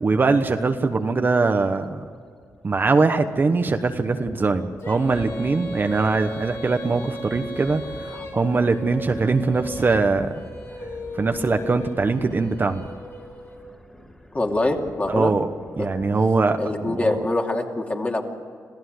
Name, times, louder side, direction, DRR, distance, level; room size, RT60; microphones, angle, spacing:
voice 1, 0.0-2.0 2.6-10.3 11.1-12.8 15.1-15.5 15.8-17.1, right 3 dB, 35° right, 6 dB, 1.1 m, -22 dB
Thunder, 1.7-3.0 3.3-16.3, left 1 dB, 10° left, 3.0 m, -44 dB
Female singing, 4.8-13.6, left 1 dB, 50° left, 4.9 m, -37 dB
voice 2, 14.3-15.3 15.8-15.9 16.6-18.3, left 2 dB, 25° left, 1 dB, 2.7 m, -24 dB
26.5 x 15.5 x 8.0 m, 2.2 s
cardioid pair, 110°, 6 cm